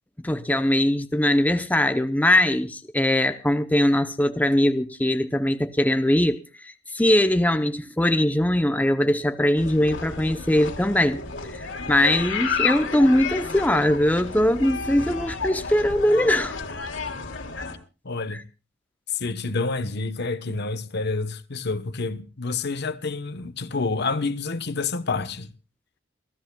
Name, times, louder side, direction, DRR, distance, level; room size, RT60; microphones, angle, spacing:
voice 1, 0.2-6.4 6.6-11.2 11.5-16.5, left 1 dB, 10° left, 0.7 m, -21 dB
sound 1, 9.6-17.8, left 5 dB, 75° left, 3.2 m, -31 dB
voice 2, 18.0-18.4 19.1-25.5, left 3 dB, 60° left, 1.0 m, -28 dB
29.0 x 15.5 x 2.3 m
head